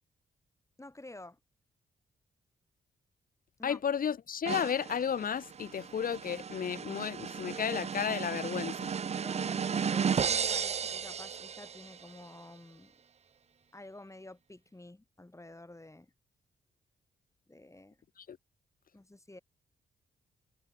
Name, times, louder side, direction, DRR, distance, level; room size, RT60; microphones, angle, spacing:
voice 1, 0.8-1.4 3.6-3.8 9.1-12.9 13.7-16.1 17.5-18.0 18.9-19.4, left 2 dB, 15° left, 5.1 m, -50 dB
voice 2, 3.6-8.9 18.3-18.4, left 7 dB, 50° left, 0.9 m, -33 dB
sound 1, 4.5-12.0, right 7 dB, 35° right, 0.5 m, -34 dB
supercardioid pair, 50°, 18 cm